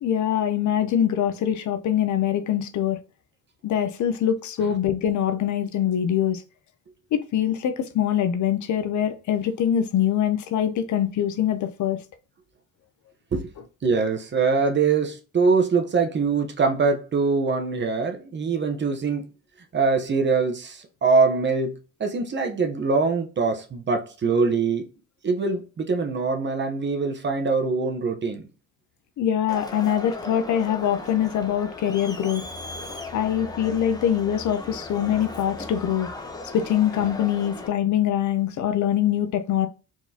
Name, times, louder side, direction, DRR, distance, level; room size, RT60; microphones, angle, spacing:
voice 1, 0.0-3.0 3.6-6.4 7.1-12.0 29.2-32.4 33.1-36.1 36.5-39.7, left 10 dB, 55° left, 0.7 m, -23 dB
voice 2, 13.8-19.3 19.7-24.9 25.2-28.5, right 4 dB, 30° right, 0.9 m, -23 dB
Crowd, 29.5-37.7, left 2 dB, 10° left, 0.9 m, -37 dB
4.6 x 3.8 x 2.8 m
cardioid pair, 110°, 35 cm